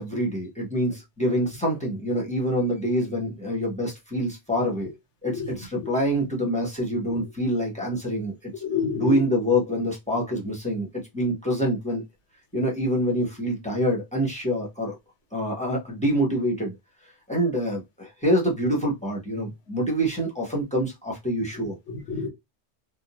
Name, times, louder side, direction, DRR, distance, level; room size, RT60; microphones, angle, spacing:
voice 1, 0.0-4.9 5.2-8.5 9.0-10.9 11.1-12.0 12.5-15.0 15.3-16.7 17.3-21.7, equal, 5° left, 0.8 m, -26 dB
voice 2, 5.2-5.9 7.0-7.2 8.6-9.3 21.5-22.3, left 6 dB, 90° left, 1.2 m, -30 dB
2.7 x 2.0 x 2.9 m
omnidirectional pair, 1.2 m